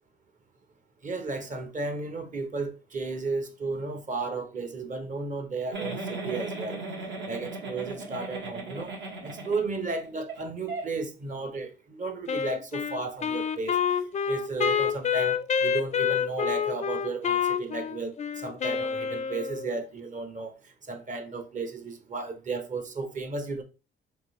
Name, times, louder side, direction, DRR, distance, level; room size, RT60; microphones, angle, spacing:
voice 1, 1.0-6.8 7.3-8.9 9.2-13.8 14.3-20.5 20.9-23.6, right 3 dB, 40° right, 0.9 m, -34 dB
Giggle, 5.7-10.0 10.3-10.4 10.7-10.8, right 3 dB, 65° right, 1.3 m, -36 dB
Wind instrument woodwind instrument, 12.3-19.8, left 7 dB, 35° left, 0.4 m, -28 dB
3.7 x 2.8 x 4.0 m
cardioid pair, 90°, 20 cm